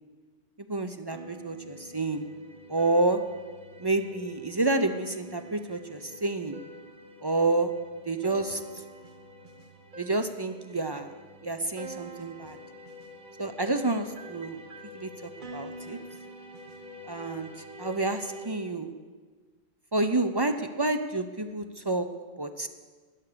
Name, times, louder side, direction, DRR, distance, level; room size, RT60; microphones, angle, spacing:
voice 1, 0.6-2.3 2.7-3.2 3.8-6.6 7.2-7.7 8.1-8.6 10.0-11.1 11.4-12.6 13.4-14.6 14.9-16.0 17.1-17.5 17.8-18.9 19.9-22.1 22.4-22.7, right 2 dB, 30° right, 8 dB, 0.5 m, -29 dB
sound 1, 1.1-18.5, right 1 dB, 50° right, 1.3 m, -46 dB
13.0 x 9.6 x 6.7 m, 1.4 s
omnidirectional pair, 1.1 m